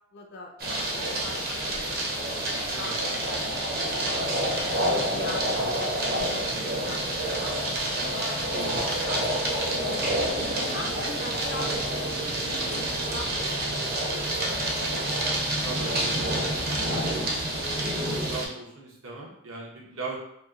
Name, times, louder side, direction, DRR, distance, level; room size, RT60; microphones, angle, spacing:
voice 1, 0.1-0.5 0.9-4.4 4.8-10.3 10.7-11.8 12.2-14.3 19.8-20.0, left 3 dB, 55° left, 2 dB, 0.5 m, -43 dB
sound 1, 0.6-18.5, right 1 dB, 50° right, 0.7 m, -28 dB
voice 2, 8.5-8.8 11.1-11.4 15.2-15.8 16.3-20.1, right 3 dB, 80° right, -3 dB, 0.9 m, -40 dB
2.9 x 2.2 x 3.6 m, 0.74 s
head